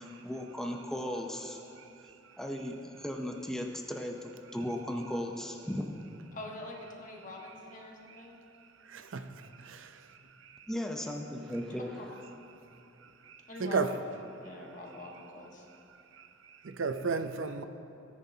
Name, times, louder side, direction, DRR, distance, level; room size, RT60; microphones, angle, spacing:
voice 1, 0.0-1.6 2.4-5.9 10.7-12.1, equal, 5° left, 0.6 m, -36 dB
voice 2, 6.3-8.4 12.0-12.1 13.5-13.8 14.4-15.6, left 2 dB, 45° left, 1.5 m, -45 dB
voice 3, 8.9-9.3 9.6-9.9 13.3-13.9 16.6-17.6, right 4 dB, 90° right, 0.6 m, -33 dB
17.5 x 10.0 x 2.8 m
head